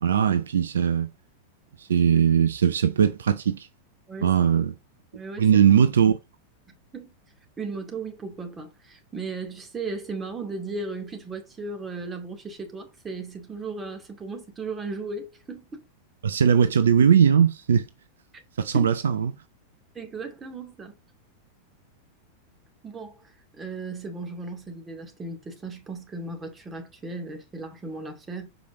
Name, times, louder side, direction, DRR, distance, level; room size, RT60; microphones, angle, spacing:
voice 1, 0.0-1.1 1.8-3.7 4.2-4.7 5.4-6.2 16.2-17.9 18.6-19.3, right 8 dB, 65° right, 0.6 m, -20 dB
voice 2, 5.1-5.6 6.9-7.1 7.6-15.8 18.7-18.9 19.9-20.9 22.8-28.5, right 3 dB, 20° right, 2.2 m, -36 dB
7.1 x 5.0 x 3.8 m
figure-of-eight pair, 90°, 0 cm